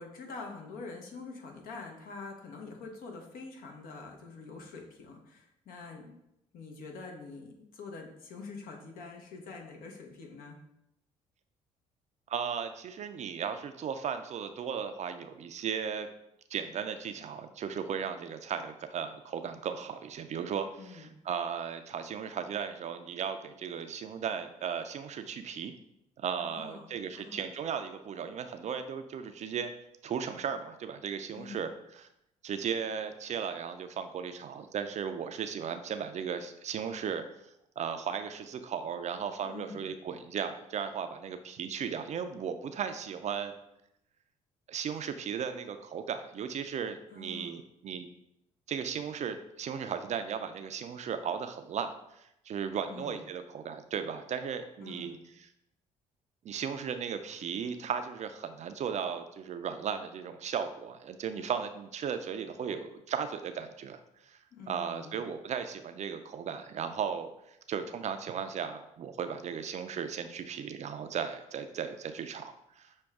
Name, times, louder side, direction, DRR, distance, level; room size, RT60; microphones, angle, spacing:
voice 1, 0.0-6.0 6.5-10.6 20.8-21.1 26.4-27.4 31.3-31.7 39.4-39.9 47.1-47.6 52.9-53.2 54.8-55.2 64.5-65.2, left 4 dB, 60° left, 2 dB, 0.9 m, -45 dB
voice 2, 12.3-16.1 16.5-25.7 26.2-29.7 30.0-32.1 32.4-37.2 37.8-43.5 44.7-48.1 48.7-55.5 56.4-64.4 64.7-72.9, right 7 dB, 45° right, 8 dB, 0.4 m, -36 dB
6.2 x 2.2 x 3.5 m, 0.82 s
hypercardioid pair, 55°, 17 cm